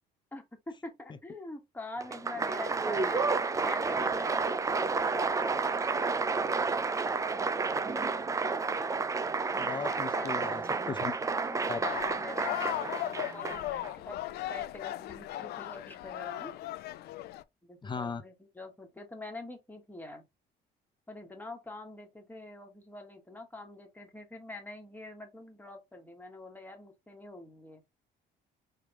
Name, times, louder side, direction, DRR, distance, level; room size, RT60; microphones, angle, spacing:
voice 1, 0.3-5.7 9.9-10.5 11.3-11.9 12.2-16.5 17.6-20.3 21.1-27.8, left 2 dB, 10° left, 1.6 m, -45 dB
Applause, 2.0-13.9, right 4 dB, 20° right, 0.5 m, -31 dB
voice 2, 9.6-11.1 11.7-11.8 17.8-18.2, left 5 dB, 25° left, 0.6 m, -37 dB
sound 1, 11.8-17.4, left 14 dB, 70° left, 0.5 m, -37 dB
5.1 x 3.3 x 3.1 m
cardioid pair, 110°, 17 cm